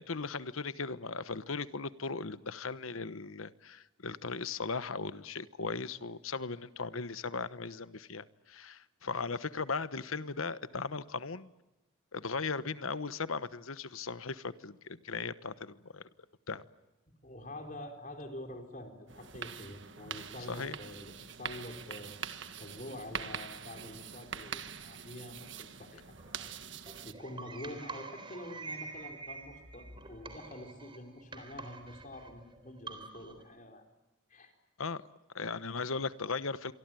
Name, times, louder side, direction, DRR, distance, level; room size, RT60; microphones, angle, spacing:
voice 1, 0.0-11.5 12.1-16.0 16.5-16.6 20.5-20.8 34.8-35.0 35.3-36.7, left 4 dB, 85° left, 1.1 m, -37 dB
voice 2, 17.2-22.1 22.6-26.5 27.0-33.8 34.3-34.5, left 1 dB, 40° left, 4.4 m, -46 dB
sound 1, 19.1-27.1, right 7 dB, 60° right, 1.5 m, -44 dB
sound 2, 26.2-33.4, right 3 dB, 25° right, 3.8 m, -47 dB
27.0 x 24.0 x 9.1 m
head